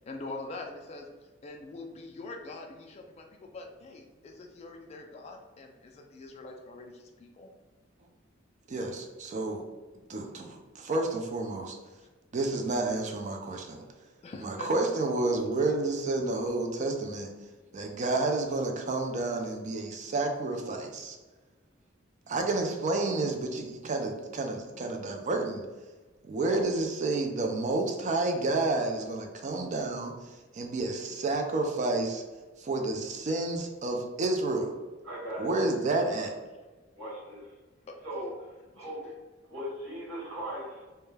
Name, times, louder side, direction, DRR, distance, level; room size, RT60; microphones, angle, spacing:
voice 1, 0.0-7.5 14.2-14.7 37.9-38.0 38.7-38.9, left 2 dB, 35° left, 2 dB, 0.3 m, -44 dB
voice 2, 8.7-9.6 10.1-11.7 12.3-13.9 14.4-17.3 17.7-21.2 22.3-25.6 26.2-30.1 30.5-32.2 32.6-34.7 35.4-36.3, right 2 dB, 40° right, 3 dB, 0.4 m, -30 dB
voice 3, 35.0-35.5 37.0-37.4 38.0-38.3 38.7-39.1 39.5-40.8, equal, 75° right, -8 dB, 1.2 m, -38 dB
2.2 x 2.1 x 3.2 m, 1.3 s
head